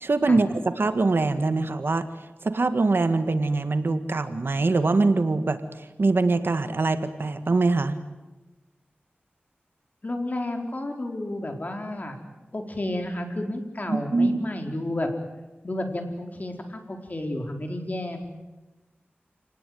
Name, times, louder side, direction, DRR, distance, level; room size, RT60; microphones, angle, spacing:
voice 1, 0.0-0.5 0.8-2.0 2.4-5.6 6.0-8.0 13.9-14.4, right 3 dB, 65° right, 10 dB, 1.8 m, -23 dB
voice 2, 10.0-12.2 12.5-15.1 15.6-18.3, left 1 dB, 45° left, 4 dB, 4.1 m, -31 dB
29.0 x 18.5 x 9.5 m, 1.1 s
wide cardioid pair, 70°, 4 cm